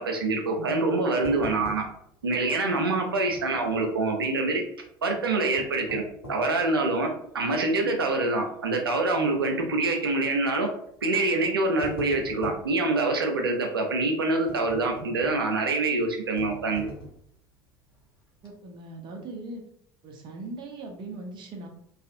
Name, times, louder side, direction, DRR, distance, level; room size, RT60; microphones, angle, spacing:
voice 1, 0.0-1.8 2.2-4.6 5.0-6.0 6.3-10.7 11.0-16.9, right 2 dB, 80° right, 3 dB, 0.5 m, -25 dB
sound 1, 1.2-2.2 2.5-2.6 3.3-4.0 5.3-6.6 7.2-7.3 7.9-8.1 8.4-8.5 9.7-10.0 10.9-11.0 11.5-12.7 14.5-15.6 16.4-17.3 17.9-18.0 18.3-18.5, equal, 85° left, 0.7 m, -42 dB
voice 2, 18.4-19.6 20.0-21.7, right 2 dB, 40° right, 2 dB, 0.7 m, -39 dB
2.6 x 2.4 x 2.5 m, 0.69 s
figure-of-eight pair, 65°, 12 cm